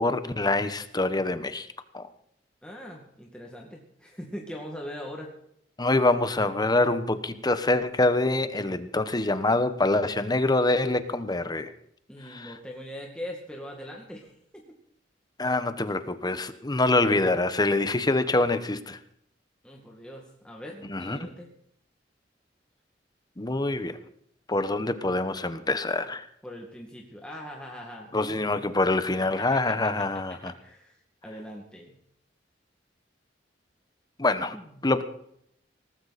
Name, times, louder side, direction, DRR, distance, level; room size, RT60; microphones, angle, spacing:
voice 1, 0.0-1.7 1.9-2.1 5.8-11.7 12.3-12.5 15.4-19.0 20.9-21.2 23.4-24.0 24.5-26.2 28.1-30.5 34.2-34.6 34.8-35.0, left 2 dB, 20° left, 12 dB, 1.0 m, -25 dB
voice 2, 2.6-5.3 12.1-14.8 19.6-21.5 26.4-28.5 29.3-31.0 31.2-31.9 34.5-34.8, equal, 5° left, -1 dB, 2.1 m, -41 dB
18.5 x 15.0 x 4.2 m, 0.70 s
head